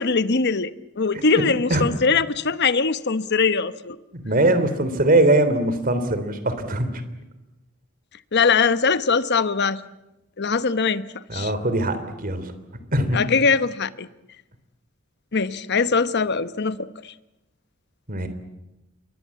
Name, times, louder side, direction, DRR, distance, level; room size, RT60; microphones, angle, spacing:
voice 1, 0.0-4.0 8.3-9.8 10.4-11.0 11.3-11.5 13.1-14.1 15.3-17.1, left 4 dB, 55° left, 1.0 m, -21 dB
voice 2, 4.1-6.9 11.3-12.5 12.9-13.2 18.1-18.3, right 1 dB, 45° right, 3.2 m, -21 dB
28.5 x 23.0 x 8.5 m
head